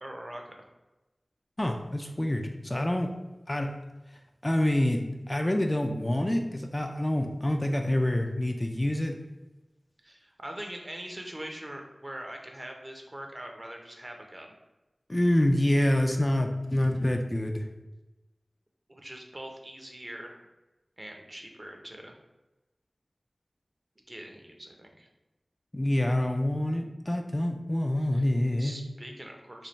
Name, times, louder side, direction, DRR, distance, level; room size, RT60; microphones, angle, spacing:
voice 1, 0.0-0.7 10.0-14.5 18.9-20.4 21.0-22.2 24.1-25.1 28.1-28.3 28.6-29.7, right 1 dB, 35° right, 2 dB, 0.6 m, -42 dB
voice 2, 1.6-3.1 3.5-3.8 4.4-9.2 15.1-17.7 25.7-28.8, left 1 dB, 25° left, 3 dB, 0.3 m, -27 dB
3.2 x 2.3 x 3.9 m, 1.1 s
wide cardioid pair, 50°, 0 cm